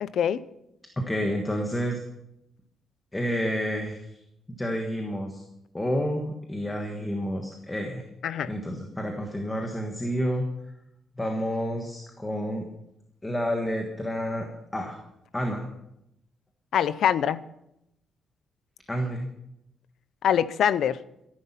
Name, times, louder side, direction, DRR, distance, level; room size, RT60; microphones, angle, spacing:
voice 1, 0.0-0.4 8.2-8.5 16.7-17.4 20.2-21.0, left 9 dB, 60° left, 16 dB, 0.6 m, -24 dB
voice 2, 1.0-2.0 3.1-4.2 4.5-5.4 5.7-8.0 8.5-10.4 11.2-12.7 13.2-15.0 15.3-15.7 18.9-19.3, equal, 10° left, 3 dB, 1.4 m, -29 dB
14.5 x 11.0 x 5.8 m, 0.82 s
cardioid pair, 175°, 0 cm